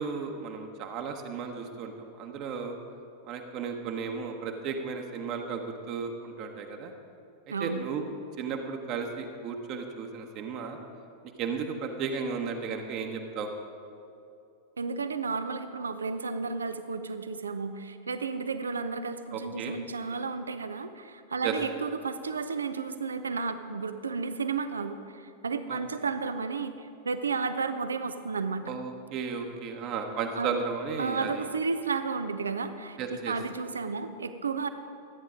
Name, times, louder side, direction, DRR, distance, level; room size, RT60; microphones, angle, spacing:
voice 1, 0.0-1.9 2.2-2.8 3.3-5.6 5.9-6.9 7.6-8.0 8.4-10.8 11.4-13.5 19.3-19.7 21.4-21.5 25.7-25.8 28.6-31.4 33.0-33.3, right 5 dB, 40° right, 4 dB, 1.1 m, -34 dB
voice 2, 7.5-7.8 14.8-28.6 30.4-30.5 31.0-34.7, right 4 dB, 75° right, 10 dB, 0.6 m, -32 dB
13.5 x 9.4 x 5.1 m, 2.7 s
figure-of-eight pair, 90°, 0 cm